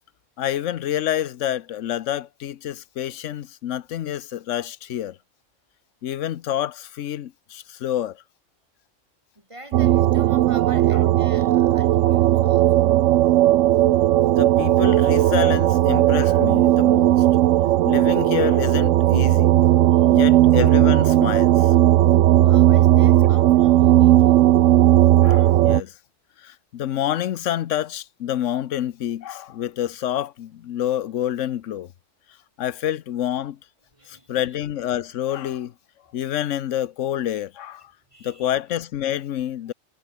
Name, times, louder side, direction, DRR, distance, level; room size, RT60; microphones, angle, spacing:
voice 1, 0.4-5.2 6.0-8.2 14.4-17.2 17.8-19.6 20.1-21.7 25.2-25.9 26.4-31.9 32.6-33.6 34.1-35.7 36.1-37.9 38.2-39.7, left 11 dB, 85° left, 1.1 m, -27 dB
voice 2, 9.3-13.0 19.9-20.4 22.4-24.4 24.8-25.0 25.3-25.5 25.8-25.9 32.7-32.8 33.9-34.6 38.1-38.5, right 1 dB, 25° right, 5.0 m, -45 dB
sound 1, 9.7-25.8, right 14 dB, 90° right, 0.9 m, -16 dB
omnidirectional pair, 1.3 m